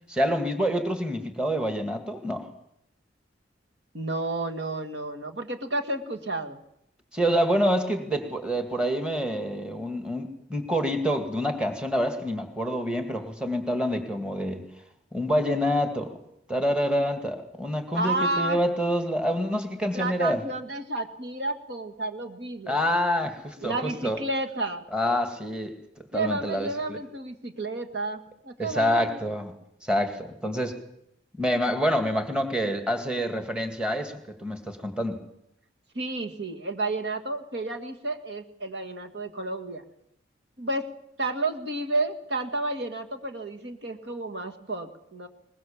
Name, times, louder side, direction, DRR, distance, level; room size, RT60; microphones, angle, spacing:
voice 1, 0.1-2.5 7.1-14.7 15.1-16.2 16.5-20.4 22.7-24.2 24.9-27.0 28.6-29.5 29.8-30.8 31.4-35.2, equal, 5° right, 6 dB, 2.1 m, -27 dB
voice 2, 3.9-6.6 17.9-18.6 19.9-22.8 23.6-24.8 26.1-29.2 30.4-30.6 36.0-39.8 40.6-40.9 41.2-45.3, right 2 dB, 60° right, 5 dB, 1.9 m, -31 dB
21.5 x 21.0 x 7.3 m, 0.76 s
head